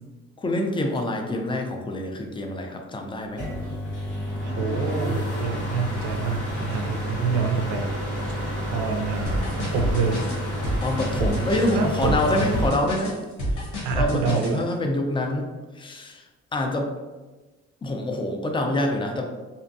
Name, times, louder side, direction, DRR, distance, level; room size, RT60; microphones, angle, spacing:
voice 1, 0.4-3.4 10.8-13.2 13.5-13.7 13.9-15.5 15.7-16.3 16.5-16.9 17.8-19.3, left 1 dB, 15° left, 3 dB, 0.4 m, -26 dB
sound 1, 3.4-12.7, equal, 90° left, 1.4 m, -30 dB
voice 2, 4.4-7.9 8.7-10.3 11.2-11.5 11.7-12.7 13.5-14.7, right 5 dB, 85° right, 4 dB, 0.5 m, -27 dB
sound 2, 9.3-14.5, equal, 75° left, 1.0 m, -28 dB
2.5 x 2.2 x 2.6 m, 1.2 s
cardioid pair, 90°, 30 cm